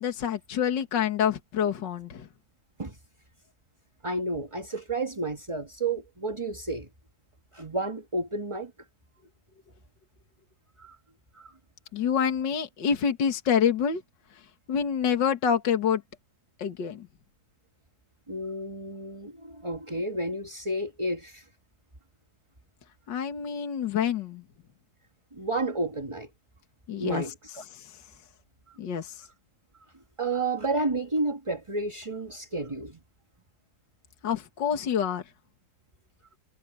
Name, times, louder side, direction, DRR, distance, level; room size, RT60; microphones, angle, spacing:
voice 1, 0.0-2.3 11.9-14.0 14.7-16.0 16.6-17.1 23.1-24.4 26.9-27.3 27.6-28.0 28.8-29.2 34.2-35.2, left 7 dB, 60° left, 2.4 m, -27 dB
voice 2, 4.0-6.9 7.5-8.7 10.8-11.0 11.3-11.5 18.3-21.5 25.3-26.3 27.0-27.6 28.7-28.8 30.2-33.0, right 2 dB, 15° right, 1.6 m, -31 dB
omnidirectional pair, 2.3 m